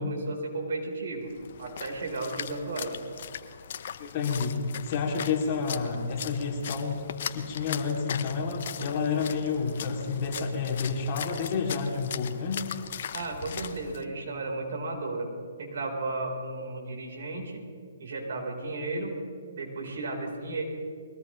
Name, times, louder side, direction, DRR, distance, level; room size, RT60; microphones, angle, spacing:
voice 1, 0.0-1.3 1.6-3.0 13.1-15.3 15.6-17.6 18.0-19.2 19.5-20.6, right 2 dB, 65° right, 1 dB, 4.3 m, -34 dB
Splash splatter, 1.3-14.0, left 8 dB, 50° left, 0.9 m, -39 dB
voice 2, 4.0-7.0 7.3-12.6, left 5 dB, 35° left, 0 dB, 2.9 m, -30 dB
22.5 x 18.5 x 3.3 m, 2.2 s
hypercardioid pair, 150°, 0 cm